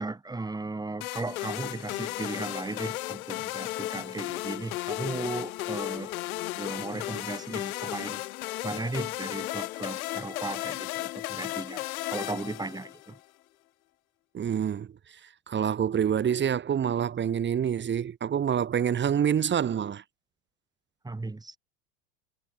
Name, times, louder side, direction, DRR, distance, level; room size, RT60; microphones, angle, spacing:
voice 1, 0.0-6.1 6.6-8.2 8.6-11.8 12.1-13.2 21.0-21.6, right 3 dB, 10° right, 6.6 m, -36 dB
sound 1, 1.0-13.2, left 17 dB, 80° left, 2.5 m, -35 dB
voice 2, 14.3-14.9 15.5-20.0, right 8 dB, 25° right, 3.8 m, -26 dB
supercardioid pair, 125°, 42 cm